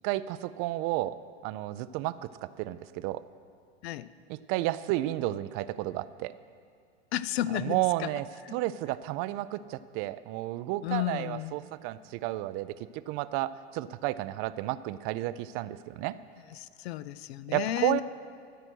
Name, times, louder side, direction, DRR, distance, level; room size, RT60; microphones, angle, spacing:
voice 1, 0.0-1.2 1.4-3.2 4.3-6.3 7.5-8.3 8.5-12.7 13.1-16.2 17.5-18.0, right 16 dB, 40° right, 15 dB, 0.4 m, -32 dB
voice 2, 7.1-8.1 8.5-8.6 10.8-11.5 16.5-18.0, left 13 dB, 65° left, 16 dB, 0.5 m, -33 dB
13.0 x 7.7 x 6.2 m, 2.2 s
hypercardioid pair, 100°, 33 cm